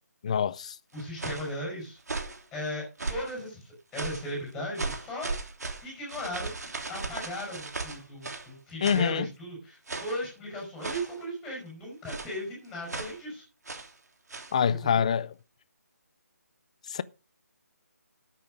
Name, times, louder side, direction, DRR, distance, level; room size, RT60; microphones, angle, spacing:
voice 1, 0.2-0.7 8.8-9.3 14.5-15.3 16.9-17.0, left 7 dB, 25° left, 0.5 m, -25 dB
voice 2, 0.9-2.0 2.5-5.3 5.8-6.5 6.9-13.4 14.8-15.0, equal, 5° left, 5.7 m, -37 dB
sound 1, 0.9-1.5 2.0-2.4 3.0-3.4 3.9-4.3 4.7-8.5 8.8-9.1 9.9-10.2 10.8-11.2 12.1-12.4 12.9-13.2 13.6-13.9 14.3-14.6, right 3 dB, 75° right, 3.2 m, -37 dB
12.0 x 8.6 x 5.1 m
hypercardioid pair, 170°, 9 cm